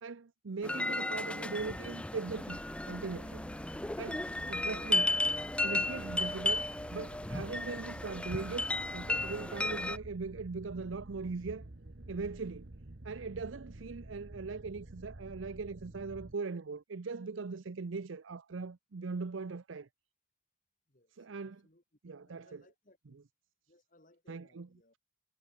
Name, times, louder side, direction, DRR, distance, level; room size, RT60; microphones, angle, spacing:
voice 1, 0.0-2.6 2.9-3.4 4.0-5.2 5.6-11.7 12.1-12.7 13.0-19.9 21.2-21.6 22.0-22.6 24.3-24.7, right 4 dB, 80° right, 0.6 m, -40 dB
sound 1, 0.6-10.0, left 2 dB, 5° left, 0.3 m, -34 dB
sound 2, 2.3-16.3, right 1 dB, 55° right, 1.2 m, -49 dB
voice 2, 20.9-21.8 22.2-23.2 23.7-25.0, left 1 dB, 45° left, 3.2 m, -66 dB
head